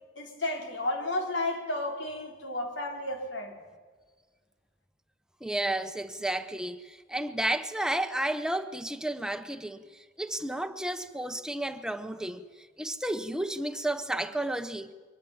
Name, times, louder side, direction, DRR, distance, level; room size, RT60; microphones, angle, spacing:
voice 1, 0.2-3.6, left 2 dB, 90° left, 3.9 m, -32 dB
voice 2, 5.4-9.8 10.2-12.4 12.8-14.9, right 1 dB, 5° right, 0.9 m, -32 dB
23.0 x 18.5 x 7.2 m
head